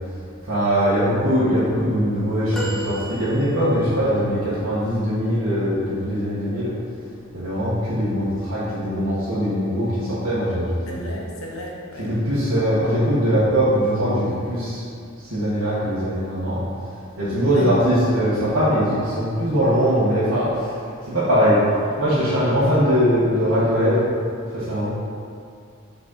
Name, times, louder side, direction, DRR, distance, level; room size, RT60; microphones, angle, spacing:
voice 1, 0.5-6.7 7.3-11.0 12.0-14.8 15.3-16.6 17.2-20.5 21.1-21.6 22.0-24.0 24.5-24.9, equal, 70° right, -12 dB, 1.4 m, -21 dB
sound 1, 2.5-3.9 4.7-4.8, equal, ahead, 0.7 m, -33 dB
voice 2, 10.9-12.1 17.4-17.7, equal, 80° left, -2 dB, 1.1 m, -33 dB
6.3 x 4.2 x 4.1 m, 2.3 s
head